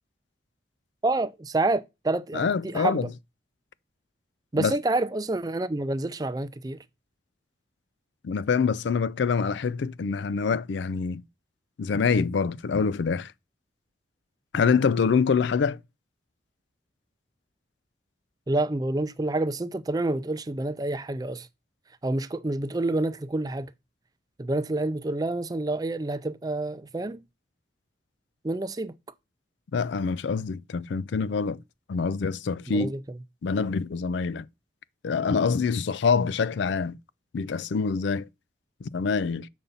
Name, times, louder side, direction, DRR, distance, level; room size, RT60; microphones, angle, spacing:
voice 1, 1.0-3.1 4.5-6.8 18.5-21.5 22.0-23.7 24.4-27.2 28.4-28.9 32.7-33.0, right 2 dB, 20° right, 0.4 m, -28 dB
voice 2, 2.3-3.1 4.6-4.7 8.2-11.2 11.8-13.3 14.5-15.8 29.7-31.6 31.9-32.9 33.4-34.5 35.0-37.0 37.3-38.3 38.8-39.5, left 5 dB, 75° left, 0.4 m, -25 dB
7.1 x 5.3 x 5.5 m
head